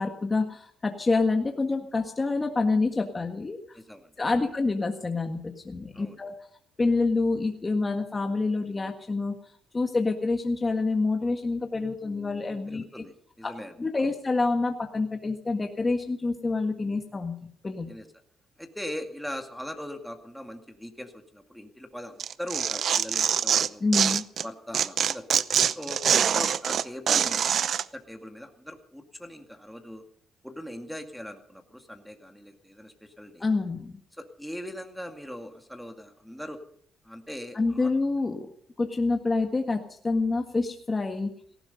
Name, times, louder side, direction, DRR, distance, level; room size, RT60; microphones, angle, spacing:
voice 1, 0.0-3.8 4.2-6.3 6.8-9.3 9.7-12.8 13.4-13.5 13.8-17.4 17.6-17.9 23.8-24.2 33.4-34.0 37.5-38.5 38.8-41.3, left 3 dB, 25° left, 4 dB, 1.6 m, -27 dB
voice 2, 3.7-4.4 5.9-6.2 12.7-13.7 14.0-14.1 17.9-18.1 18.6-23.8 24.4-25.3 25.8-27.7 27.9-30.0 30.4-33.5 34.1-36.6 37.0-37.9, left 1 dB, ahead, 4 dB, 2.1 m, -40 dB
Tearing, 22.2-24.5 24.7-27.8, right 8 dB, 60° right, 0.7 m, -24 dB
17.5 x 15.0 x 5.4 m, 0.65 s
cardioid pair, 90°, 0 cm